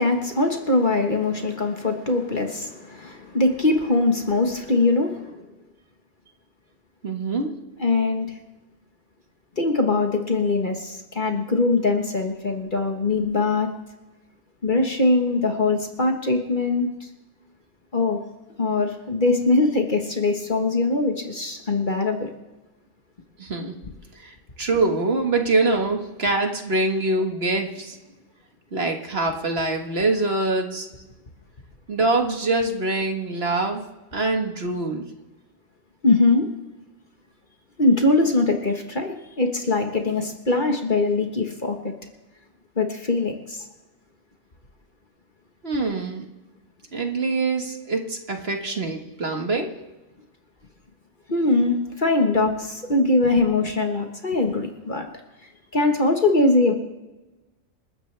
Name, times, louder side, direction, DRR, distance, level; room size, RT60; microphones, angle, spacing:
voice 1, 0.0-5.3 7.8-8.3 9.6-13.7 14.6-16.9 17.9-18.2 18.6-22.3 36.0-36.4 37.8-41.9 42.8-43.6 51.3-55.0 55.7-56.7, left 3 dB, 40° left, 4 dB, 1.5 m, -22 dB
voice 2, 7.0-7.5 23.4-23.7 24.2-28.0 28.7-30.9 31.9-33.8 34.1-35.1 45.6-46.3 46.9-49.7, right 2 dB, 50° right, 3 dB, 1.8 m, -24 dB
28.0 x 13.0 x 3.4 m, 1.1 s
omnidirectional pair, 1.4 m